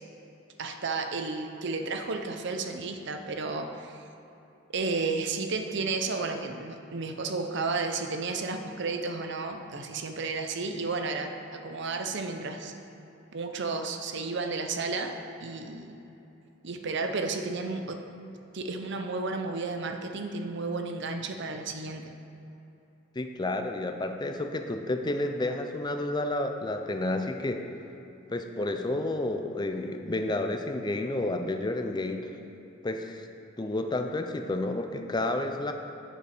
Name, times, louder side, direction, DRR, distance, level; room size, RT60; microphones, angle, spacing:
voice 1, 0.6-4.0 4.7-12.7 13.3-16.0 16.6-18.0 18.5-22.0, right 3 dB, 55° right, 6 dB, 0.6 m, -32 dB
voice 2, 23.2-27.7 28.3-32.4 32.8-33.3 33.6-35.7, left 2 dB, 20° left, 5 dB, 0.5 m, -30 dB
7.9 x 6.8 x 4.9 m, 2.9 s
head